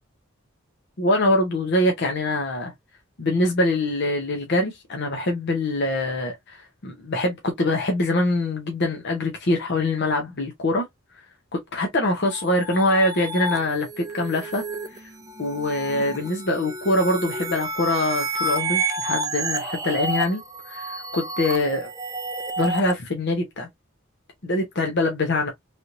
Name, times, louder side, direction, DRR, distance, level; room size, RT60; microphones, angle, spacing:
voice 1, 1.0-2.7 3.2-10.8 11.5-14.6 14.9-15.1 15.4-21.9 22.6-23.7 24.4-25.5, left 1 dB, 55° left, 0.7 m, -24 dB
sound 1, 12.2-22.9, right 2 dB, 15° right, 0.5 m, -30 dB
3.3 x 2.9 x 2.5 m
head